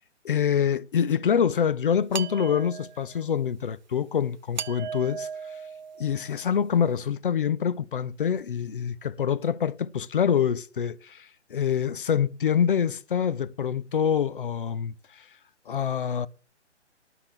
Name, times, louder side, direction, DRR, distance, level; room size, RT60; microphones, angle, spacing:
voice 1, 0.2-5.3 6.0-15.3 15.7-16.3, left 8 dB, 50° left, 0.6 m, -26 dB
sound 1, 2.1-3.2 4.6-6.4, right 7 dB, 40° right, 0.5 m, -37 dB
11.5 x 5.9 x 7.5 m
figure-of-eight pair, 135°, 35 cm